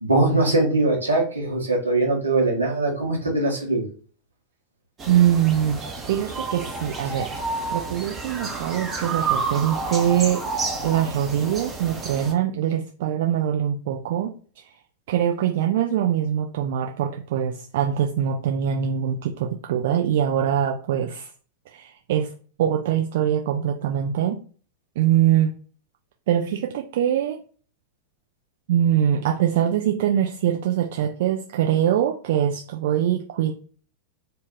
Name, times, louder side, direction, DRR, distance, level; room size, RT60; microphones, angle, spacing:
voice 1, 0.0-3.9, right 2 dB, 80° right, -1 dB, 1.0 m, -21 dB
sound 1, 5.0-12.3, right 4 dB, 20° right, 0.8 m, -30 dB
voice 2, 5.1-7.3 7.7-10.4 10.8-14.6 15.1-21.3 21.7-22.3 22.6-24.4 25.0-25.5 26.3-27.4 28.7-33.5, right 10 dB, 55° right, 2 dB, 0.3 m, -23 dB
2.6 x 2.4 x 3.5 m, 0.41 s
figure-of-eight pair, 90°, 0 cm